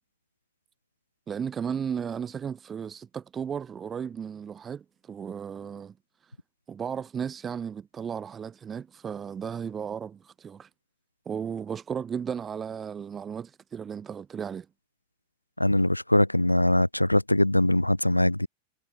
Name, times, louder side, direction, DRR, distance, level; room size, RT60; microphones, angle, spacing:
voice 1, 1.3-5.9 6.7-10.7 11.2-14.7, right 7 dB, 20° right, 1.1 m, -35 dB
voice 2, 15.6-18.5, left 1 dB, 85° left, 0.4 m, -22 dB
figure-of-eight pair, 90°, 0 cm